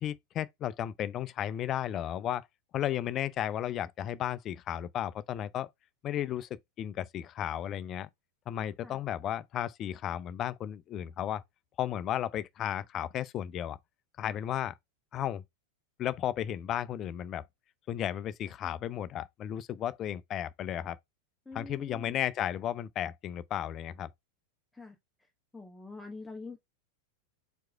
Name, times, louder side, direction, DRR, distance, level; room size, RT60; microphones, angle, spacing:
voice 1, 0.0-2.5 2.7-5.7 6.0-8.1 8.5-11.4 11.8-13.8 14.2-14.7 15.1-15.4 16.0-17.4 17.9-21.0 21.5-24.1, left 11 dB, 30° left, 0.4 m, -34 dB
voice 2, 21.5-22.2 24.7-25.0 25.5-26.6, left 3 dB, 5° left, 0.9 m, -45 dB
4.6 x 4.3 x 2.4 m
figure-of-eight pair, 90°, 0 cm